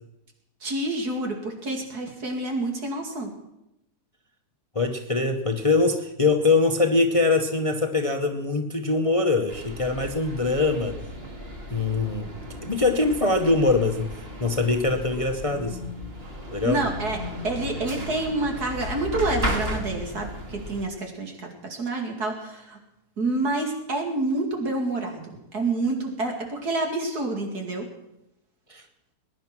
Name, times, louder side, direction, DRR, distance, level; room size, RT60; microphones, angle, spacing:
voice 1, 0.6-3.3 16.6-17.2 17.4-22.8 23.2-27.9, right 2 dB, 70° right, 2 dB, 3.0 m, -28 dB
voice 2, 4.7-10.9 11.7-12.3 12.6-14.1 14.4-15.8 16.5-16.8 28.7-28.8, left 3 dB, 25° left, 6 dB, 0.8 m, -23 dB
sound 1, 9.5-20.8, equal, 35° right, 2.1 m, -35 dB
20.5 x 10.5 x 6.0 m, 0.86 s
omnidirectional pair, 1.7 m